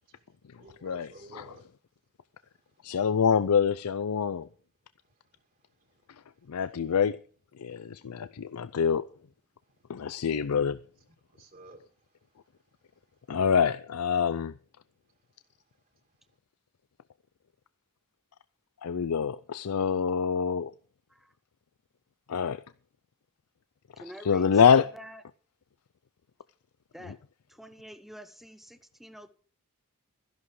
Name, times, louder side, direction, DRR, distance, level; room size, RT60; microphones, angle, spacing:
voice 1, 0.0-1.7 2.4-3.0 5.0-6.9 7.7-8.1 9.6-10.3 11.1-13.4 15.0-16.4, right 1 dB, 40° right, 2.1 m, -58 dB
voice 2, 2.8-4.5 6.5-7.2 7.6-9.1 9.9-10.8 13.3-14.5 18.8-20.7 22.3-22.6 24.2-24.9, left 7 dB, 90° left, 0.5 m, -25 dB
voice 3, 24.0-25.2 26.9-27.2 27.5-29.3, equal, ahead, 0.8 m, -47 dB
13.5 x 11.0 x 4.8 m
head